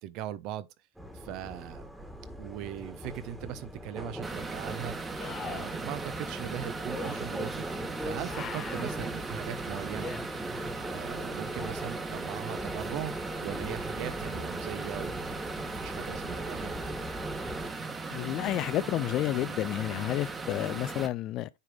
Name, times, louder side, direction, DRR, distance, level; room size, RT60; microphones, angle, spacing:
voice 1, 0.0-0.7 1.1-1.8 2.4-4.9 5.4-7.6 8.0-10.1 10.8-13.1 13.4-16.7, right 11 dB, 50° right, 0.8 m, -39 dB
sound 1, 1.0-17.7, equal, ahead, 1.6 m, -40 dB
sound 2, 3.6-3.7 5.2-5.8 6.9-7.2 8.3-9.0 10.0-10.2 11.4-12.1 15.2-15.3, left 7 dB, 30° left, 1.1 m, -42 dB
sound 3, 4.2-21.1, right 4 dB, 20° right, 1.4 m, -38 dB
voice 2, 18.1-21.5, left 14 dB, 45° left, 0.4 m, -30 dB
9.5 x 3.3 x 3.6 m
hypercardioid pair, 100°, 0 cm